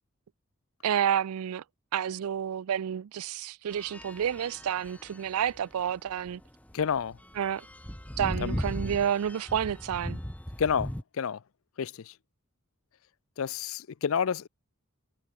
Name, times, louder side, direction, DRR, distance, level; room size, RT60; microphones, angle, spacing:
voice 1, 0.8-1.6 1.9-6.4 7.4-7.6 8.2-10.2, right 9 dB, 85° right, 0.4 m, -30 dB
sound 1, 3.7-11.0, equal, 5° left, 1.0 m, -38 dB
voice 2, 6.7-7.2 8.4-8.6 10.6-11.4 11.8-12.1 13.4-14.5, left 7 dB, 70° left, 0.5 m, -29 dB
head